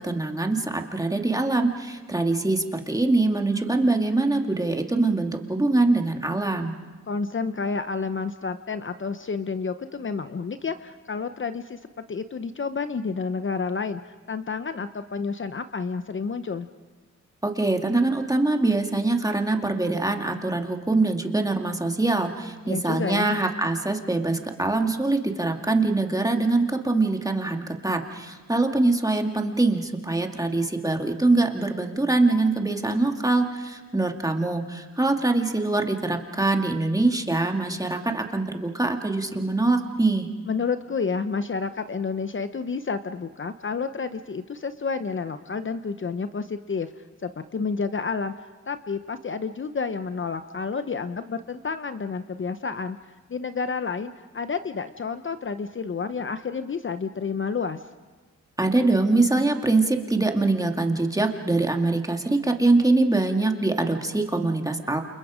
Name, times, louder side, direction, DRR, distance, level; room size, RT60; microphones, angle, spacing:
voice 1, 0.0-6.7 17.4-40.3 58.6-65.0, right 2 dB, 10° right, 3 dB, 2.3 m, -23 dB
voice 2, 7.1-11.8 12.1-16.7 22.6-23.4 40.5-53.0 53.3-57.8, left 5 dB, 45° left, 10 dB, 0.8 m, -30 dB
29.0 x 28.5 x 5.1 m, 1.3 s
cardioid pair, 85°, 29 cm